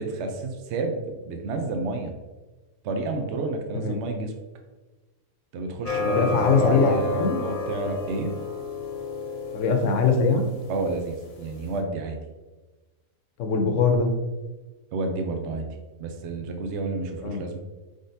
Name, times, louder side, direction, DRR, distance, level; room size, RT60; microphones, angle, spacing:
voice 1, 0.0-2.1 2.8-4.3 5.5-8.3 10.7-12.2 14.9-15.6 16.0-17.6, right 3 dB, 60° right, 3 dB, 0.9 m, -30 dB
sound 1, 5.9-11.8, left 3 dB, 90° left, 1.3 m, -32 dB
voice 2, 6.1-7.4 9.5-10.5 13.4-14.2 17.2-17.4, left 4 dB, 70° left, 5 dB, 1.0 m, -22 dB
5.0 x 3.9 x 2.6 m, 1.2 s
omnidirectional pair, 1.4 m